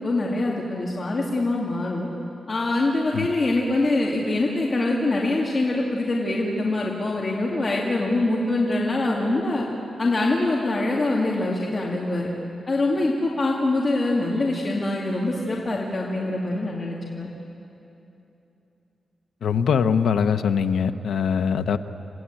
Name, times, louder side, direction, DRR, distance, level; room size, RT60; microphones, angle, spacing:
voice 1, 0.0-2.1 2.5-9.6 10.0-12.3 12.7-17.3, left 2 dB, 35° left, -3 dB, 2.3 m, -24 dB
voice 2, 19.4-21.8, left 7 dB, 90° left, 9 dB, 0.9 m, -22 dB
29.0 x 17.0 x 8.9 m, 2.9 s
wide cardioid pair, 130°, 0 cm